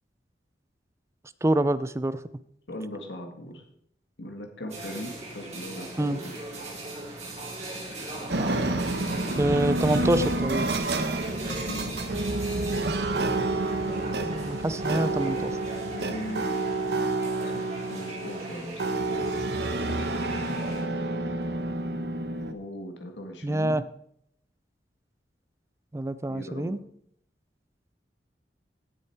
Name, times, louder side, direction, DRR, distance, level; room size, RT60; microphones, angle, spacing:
voice 1, 1.4-2.2 6.0-6.2 9.4-10.7 14.2-15.6 23.4-23.8 25.9-26.8, right 1 dB, 15° right, 15 dB, 0.4 m, -26 dB
voice 2, 2.7-3.6 4.2-6.3 11.5-12.2 15.9-16.5 17.5-17.6 17.9-18.8 22.5-23.8 26.3-26.8, equal, 80° left, 4 dB, 1.7 m, -39 dB
sound 1, 4.7-20.8, right 2 dB, 40° right, 4.1 m, -40 dB
sound 2, 8.3-22.5, right 2 dB, 65° right, 1.0 m, -29 dB
16.0 x 6.7 x 4.5 m, 0.72 s
head